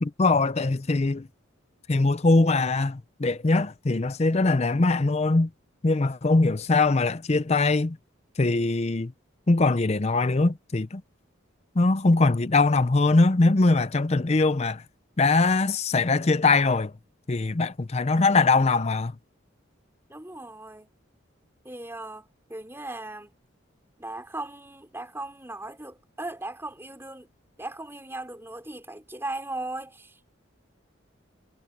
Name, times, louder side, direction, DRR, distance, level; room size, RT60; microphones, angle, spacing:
voice 1, 0.0-1.3 1.9-5.5 5.8-8.0 8.4-9.1 9.5-11.0 11.8-14.8 15.2-16.9 17.3-19.1, left 3 dB, 30° left, 0.5 m, -22 dB
voice 2, 20.1-20.9 21.6-23.3 24.0-27.3 27.6-30.3, right 2 dB, 10° right, 3.4 m, -38 dB
head